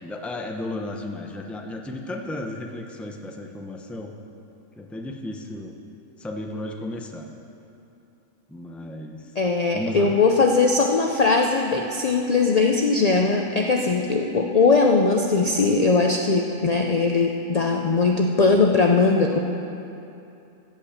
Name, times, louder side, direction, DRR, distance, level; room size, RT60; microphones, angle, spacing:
voice 1, 0.0-4.1 4.8-5.7 6.2-7.3 8.5-9.3 9.7-10.1, left 1 dB, ahead, 2 dB, 0.4 m, -34 dB
voice 2, 9.4-19.4, left 4 dB, 70° left, 2 dB, 0.3 m, -20 dB
15.0 x 5.2 x 7.2 m, 2.7 s
omnidirectional pair, 1.4 m